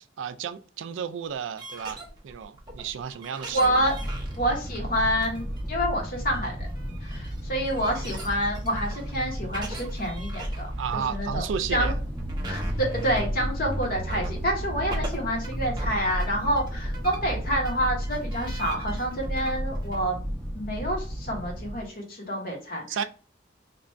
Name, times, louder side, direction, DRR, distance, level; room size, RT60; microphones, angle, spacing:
voice 1, 0.0-3.8 10.8-12.0 22.9-23.0, right 7 dB, 80° right, 0.3 m, -33 dB
sound 1, 1.3-20.0, right 2 dB, 25° right, 0.9 m, -41 dB
voice 2, 3.5-3.9 4.4-6.7 7.0-10.7 10.9-11.4 11.7-11.9 12.5-20.2 20.5-22.8, equal, 50° left, 1.2 m, -28 dB
sound 2, 3.5-21.9, equal, 5° left, 0.7 m, -33 dB
3.0 x 2.5 x 4.3 m
head